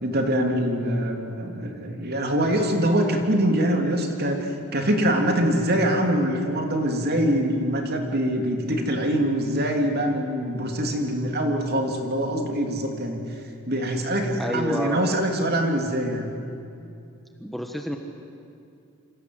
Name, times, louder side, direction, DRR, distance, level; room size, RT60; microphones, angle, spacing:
voice 1, 0.0-13.2 13.6-16.3, right 1 dB, 45° right, 3 dB, 3.3 m, -24 dB
voice 2, 14.4-15.0 17.4-18.0, equal, ahead, 3 dB, 1.4 m, -29 dB
28.0 x 26.5 x 8.0 m, 2.6 s
head